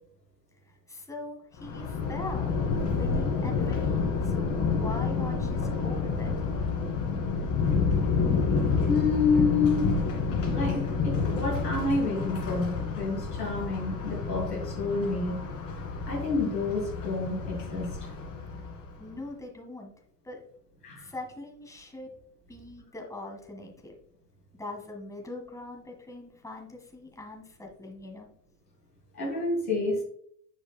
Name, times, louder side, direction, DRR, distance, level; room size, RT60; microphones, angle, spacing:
voice 1, 0.9-2.5 2.9-6.5 18.6-18.7 19.0-20.0 20.2-20.4 21.0-22.1 22.5-24.0 24.6-28.3, left 2 dB, 5° left, 2 dB, 1.6 m, -42 dB
Thunder, 1.6-19.0, left 5 dB, 45° left, 2.4 m, -29 dB
voice 2, 8.9-9.9 10.5-15.4 16.0-18.0 20.8-21.1 29.1-30.0, left 3 dB, 90° left, -3 dB, 2.5 m, -28 dB
9.0 x 5.1 x 2.2 m, 0.63 s
figure-of-eight pair, 70°, 47 cm